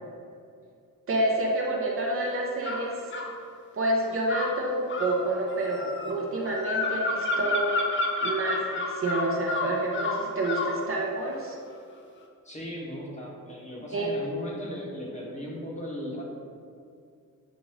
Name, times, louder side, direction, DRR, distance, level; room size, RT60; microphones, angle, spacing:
voice 1, 1.1-2.9 3.7-7.8 8.2-11.6 13.9-14.1, right 1 dB, 40° right, -1 dB, 0.7 m, -28 dB
sound 1, 2.6-3.3 4.3-10.8, left 2 dB, 35° left, 0.5 m, -30 dB
voice 2, 12.4-16.2, equal, 20° left, -3 dB, 0.9 m, -37 dB
6.1 x 2.5 x 3.1 m, 2.3 s
cardioid pair, 100°, 33 cm